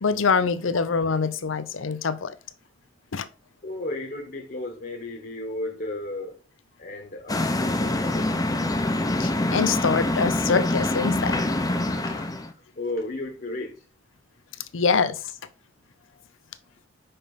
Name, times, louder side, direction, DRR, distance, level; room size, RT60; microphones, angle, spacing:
voice 1, 0.0-2.3 3.1-3.3 9.2-11.4 14.7-15.2, left 5 dB, 75° left, 0.6 m, -24 dB
voice 2, 3.6-6.4 6.8-8.3 11.8-13.8, left 2 dB, 45° left, 1.3 m, -34 dB
sound 1, 7.3-12.5, left 1 dB, 20° left, 0.8 m, -25 dB
5.5 x 5.3 x 5.5 m
head